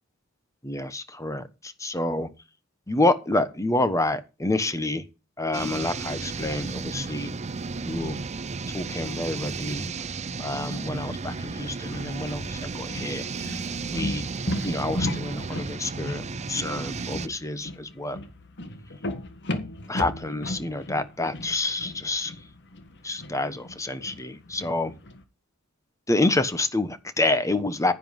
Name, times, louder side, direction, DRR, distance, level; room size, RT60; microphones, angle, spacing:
voice 1, 0.6-2.3 2.9-5.0 5.4-7.3 7.8-8.2 8.7-9.8 10.4-13.6 13.9-14.2 14.6-18.2 19.9-22.3 23.0-24.9 26.1-27.9, left 2 dB, 15° left, 1.2 m, -28 dB
sound 1, 5.5-17.3, right 4 dB, 30° right, 0.6 m, -33 dB
sound 2, 9.7-25.2, left 1 dB, 55° left, 1.8 m, -37 dB
10.5 x 9.5 x 5.4 m
head